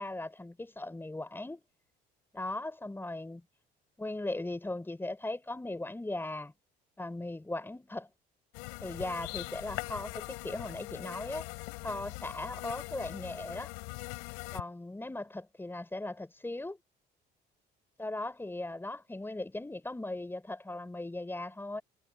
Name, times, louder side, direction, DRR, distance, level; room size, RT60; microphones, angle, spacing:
voice 1, 0.0-1.6 2.3-3.4 4.0-6.5 7.0-8.1 8.8-11.5 11.8-13.7 14.5-16.8 18.0-21.8, left 2 dB, 10° left, 5.6 m, -38 dB
sound 1, 8.5-14.6, left 32 dB, 90° left, 4.5 m, -41 dB
supercardioid pair, 80°, 19 cm